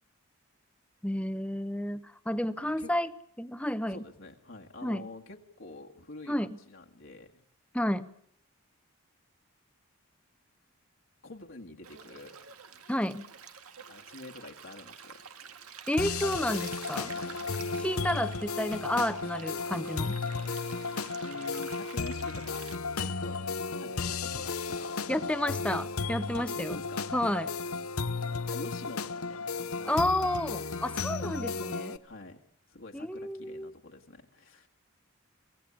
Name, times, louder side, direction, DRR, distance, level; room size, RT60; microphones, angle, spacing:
voice 1, 1.0-3.1 3.4-4.0 4.8-5.1 6.3-6.6 7.7-8.1 12.9-13.3 15.9-17.1 17.8-20.2 25.1-26.8 27.1-27.5 29.9-32.0 32.9-33.7, left 1 dB, 5° left, 12 dB, 0.8 m, -31 dB
voice 2, 3.9-7.4 11.2-12.5 13.9-15.3 17.1-17.4 21.2-22.7 23.0-23.4 23.8-25.2 26.4-27.1 28.2-29.9 31.2-31.5 32.0-32.4 32.7-34.7, left 2 dB, 60° left, 1 dB, 1.8 m, -47 dB
Stream, 11.8-22.8, right 7 dB, 90° right, 2.0 m, -48 dB
sound 1, 16.0-32.0, left 4 dB, 85° left, 1.0 m, -34 dB
24.0 x 17.5 x 8.6 m, 0.67 s
head